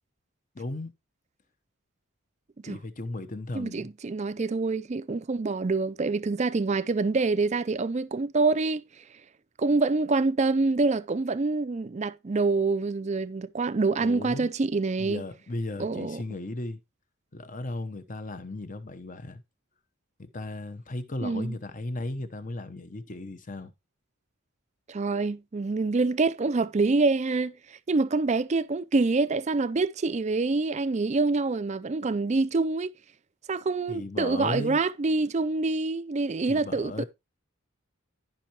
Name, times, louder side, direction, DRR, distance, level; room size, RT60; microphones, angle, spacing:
voice 1, 0.5-0.9 2.7-3.9 14.0-14.5 15.0-16.8 17.3-19.4 20.2-23.7 33.9-34.8 36.5-37.0, left 2 dB, 40° left, 0.9 m, -36 dB
voice 2, 3.5-8.8 9.6-15.2 15.8-16.2 21.2-21.6 24.9-32.9 33.5-37.0, right 3 dB, 35° right, 0.4 m, -26 dB
13.5 x 5.5 x 2.9 m
head